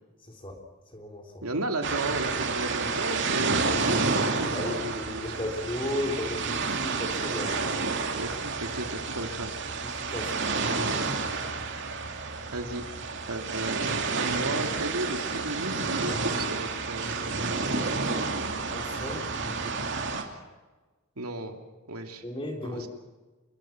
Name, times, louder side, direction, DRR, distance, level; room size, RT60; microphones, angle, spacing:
voice 1, 0.2-0.6 0.9-1.5 4.5-7.6 9.8-10.3 18.7-20.0 22.2-22.9, left 1 dB, 25° left, 3 dB, 3.6 m, -35 dB
voice 2, 1.4-5.5 8.2-9.5 12.5-12.8 13.3-17.1 21.2-21.6 21.9-22.2 22.6-22.9, right 2 dB, 85° right, 5 dB, 2.8 m, -34 dB
sound 1, 1.8-20.2, right 4 dB, 50° right, 2.8 m, -30 dB
28.5 x 21.5 x 6.1 m, 1.3 s
head